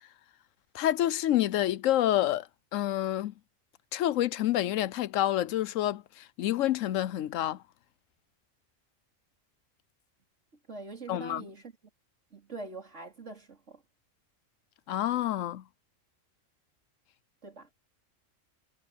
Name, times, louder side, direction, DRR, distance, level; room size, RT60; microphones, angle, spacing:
voice 1, 0.7-2.5 2.7-3.3 3.9-7.6 11.1-11.5 14.9-15.6, left 13 dB, 80° left, 1.0 m, -28 dB
voice 2, 10.7-11.7 12.3-13.8 17.4-17.7, right 3 dB, 65° right, 4.3 m, -43 dB
omnidirectional pair, 1.3 m